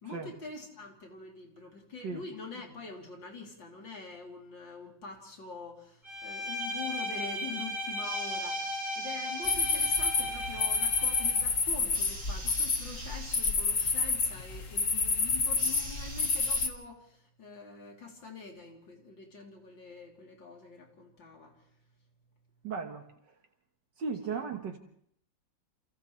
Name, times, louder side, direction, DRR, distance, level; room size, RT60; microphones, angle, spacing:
voice 1, 0.0-21.5 24.3-24.4, left 4 dB, 80° left, 0 dB, 4.0 m, -45 dB
Bowed string instrument, 6.0-11.4, left 1 dB, 20° right, 8.2 m, -36 dB
sound 1, 8.0-10.2 11.9-13.6 15.6-16.7, right 4 dB, 50° right, 2.2 m, -46 dB
sound 2, 9.4-16.7, left 4 dB, 45° left, 1.8 m, -29 dB
voice 2, 22.6-23.1 24.0-24.8, right 5 dB, 70° right, 4 dB, 2.0 m, -35 dB
29.5 x 28.0 x 3.3 m, 0.67 s
omnidirectional pair, 2.0 m